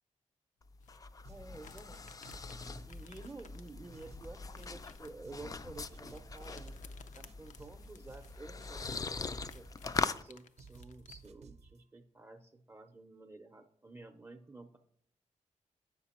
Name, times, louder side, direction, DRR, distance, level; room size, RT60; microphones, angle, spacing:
sound 1, 0.6-10.2, left 4 dB, 30° left, 0.3 m, -42 dB
sound 2, 0.8-11.3, left 6 dB, 85° left, 0.5 m, -59 dB
sound 3, 1.2-1.6 1.9-3.6 3.9-4.9 5.2-6.9 7.2-8.9 9.2-10.3 10.6-11.8, right 4 dB, 60° right, 0.5 m, -56 dB
voice 1, 1.3-2.0 2.9-6.8 7.1-9.7 10.2-14.8, right 2 dB, 20° right, 5 dB, 0.5 m, -51 dB
7.6 x 5.9 x 4.2 m, 0.66 s
wide cardioid pair, 105°, 12 cm